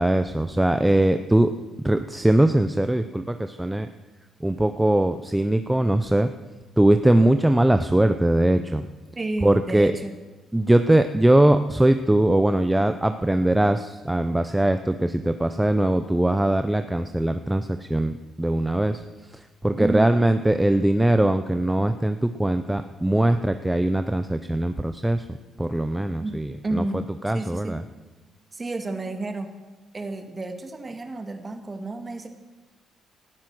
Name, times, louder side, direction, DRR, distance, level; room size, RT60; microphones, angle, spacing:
voice 1, 0.0-1.5 1.8-3.9 4.4-6.3 6.8-8.8 9.4-9.9 10.5-19.0 19.3-26.8 27.2-27.8, right 1 dB, 10° right, 8 dB, 0.7 m, -21 dB
voice 2, 9.2-10.1 19.8-20.1 26.2-27.8 28.5-29.5 29.9-32.3, right 2 dB, 25° right, 6 dB, 2.1 m, -31 dB
18.5 x 12.5 x 6.2 m, 1.2 s
cardioid pair, 90°, 0 cm